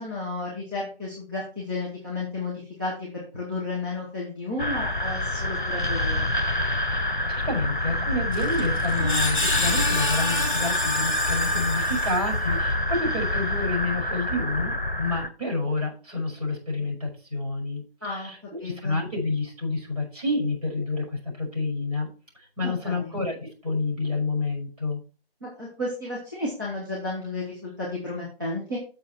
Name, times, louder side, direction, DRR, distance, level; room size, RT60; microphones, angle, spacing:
voice 1, 0.0-6.3 18.0-19.0 22.6-23.1 25.4-28.8, left 2 dB, 20° right, -7 dB, 2.1 m, -33 dB
sound 1, 4.6-15.3, left 1 dB, 50° left, 1.0 m, -26 dB
voice 2, 6.9-22.1 22.6-25.0, left 2 dB, 40° right, -2 dB, 5.6 m, -29 dB
Screech, 8.3-12.6, left 2 dB, 35° left, 2.6 m, -29 dB
8.6 x 7.2 x 4.5 m, 0.36 s
figure-of-eight pair, 175°, 31 cm